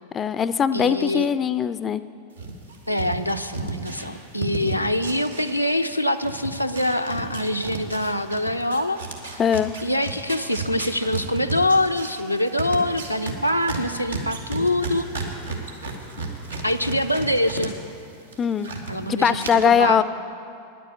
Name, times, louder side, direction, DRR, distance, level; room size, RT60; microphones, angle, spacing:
voice 1, 0.1-2.0 9.4-9.7 18.4-18.7 19.0-20.0, left 7 dB, 25° left, 14 dB, 0.3 m, -21 dB
voice 2, 0.7-1.3 2.9-9.0 9.3-9.4 9.8-15.1 16.6-17.8 18.9-20.0, left 1 dB, 90° left, 6 dB, 0.5 m, -24 dB
sound 1, 2.4-5.9 6.2-17.7 18.0-18.9 19.4-19.5, right 3 dB, 80° right, 1.6 m, -33 dB
10.0 x 8.4 x 8.4 m, 2.6 s
figure-of-eight pair, 90°, 0 cm